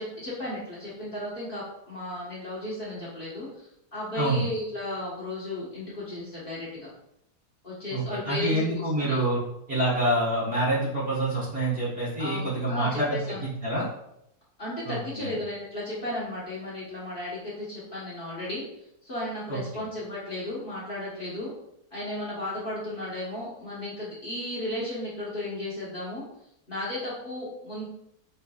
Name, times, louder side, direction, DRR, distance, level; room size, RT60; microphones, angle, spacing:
voice 1, 0.0-6.9 7.6-9.2 12.2-13.4 14.6-18.6 19.0-21.5 21.9-26.2 26.7-27.9, left 1 dB, 35° left, -8 dB, 1.3 m, -34 dB
voice 2, 4.1-4.5 7.9-9.4 9.7-13.9 14.8-15.3 19.5-19.6, right 1 dB, 35° right, -6 dB, 1.6 m, -27 dB
5.7 x 3.5 x 2.4 m, 0.79 s
omnidirectional pair, 1.7 m